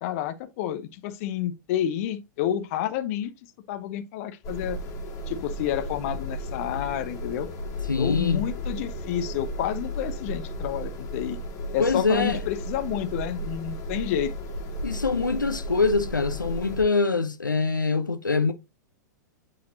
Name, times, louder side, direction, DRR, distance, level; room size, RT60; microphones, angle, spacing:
voice 1, 0.0-3.3 3.7-4.8 5.3-7.5 8.0-11.4 11.7-14.3, left 11 dB, 45° left, 0.8 m, -29 dB
sound 1, 4.4-16.8, equal, 30° left, 2.2 m, -34 dB
voice 2, 7.9-8.5 11.8-12.4 14.8-18.5, left 4 dB, 85° left, 0.7 m, -24 dB
8.5 x 4.1 x 2.8 m
figure-of-eight pair, 100°, 10 cm